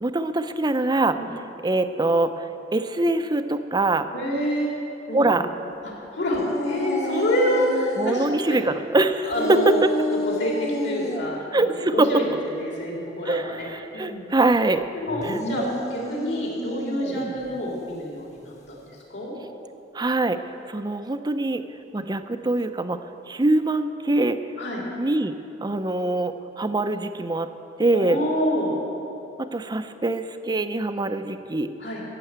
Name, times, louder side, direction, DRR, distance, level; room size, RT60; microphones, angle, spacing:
voice 1, 0.0-1.2 1.6-4.1 5.1-5.5 8.0-9.9 11.5-12.1 13.3-14.9 15.2-15.4 17.1-17.3 19.9-20.4 20.7-21.6 21.9-23.0 23.3-24.4 25.0-27.5 27.8-28.2 29.4-31.7, right 2 dB, 25° right, 10 dB, 0.6 m, -23 dB
voice 2, 4.1-4.7 5.1-5.4 5.8-8.7 9.3-9.8 10.2-13.7 13.9-14.2 14.9-15.6 15.9-19.3 24.6-24.8 27.9-28.8 31.8-32.0, left 1 dB, 70° left, -3 dB, 3.7 m, -27 dB
sound 1, 6.3-8.3 9.3-11.3 15.1-17.3, equal, 40° left, 1.5 m, -30 dB
15.0 x 7.7 x 9.2 m, 2.9 s
head